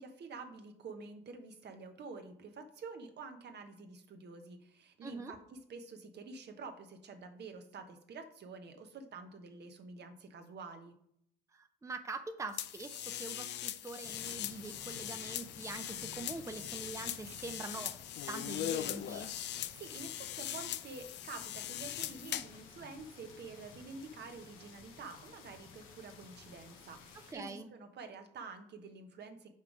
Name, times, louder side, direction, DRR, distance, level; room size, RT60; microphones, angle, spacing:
voice 1, 0.0-11.0 19.8-29.5, right 4 dB, 55° right, 6 dB, 1.0 m, -48 dB
voice 2, 5.0-5.3 11.5-18.0 18.3-19.3 27.3-27.7, right 3 dB, 15° right, 7 dB, 0.6 m, -44 dB
sound 1, 12.6-22.6, left 12 dB, 60° left, 0.4 m, -40 dB
sound 2, 14.0-27.3, left 5 dB, 85° left, 0.9 m, -54 dB
5.4 x 3.8 x 4.9 m, 0.68 s
supercardioid pair, 65°, 20 cm